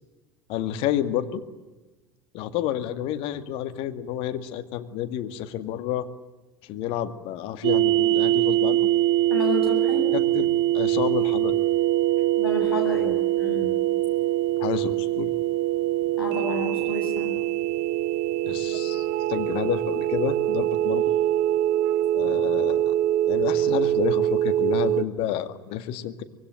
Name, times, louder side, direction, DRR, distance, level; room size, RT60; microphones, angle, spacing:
voice 1, 0.5-1.4 2.3-6.1 6.6-8.9 10.1-11.6 14.6-15.3 18.4-21.1 22.1-22.9 23.3-26.2, left 11 dB, 50° left, 9 dB, 2.1 m, -30 dB
sound 1, 7.6-25.0, right 14 dB, 50° right, 0.8 m, -23 dB
voice 2, 9.3-10.0 12.4-13.7 16.2-17.3, left 2 dB, 85° left, 1 dB, 7.9 m, -30 dB
25.0 x 22.5 x 9.6 m, 1.2 s
figure-of-eight pair, 70°, 12 cm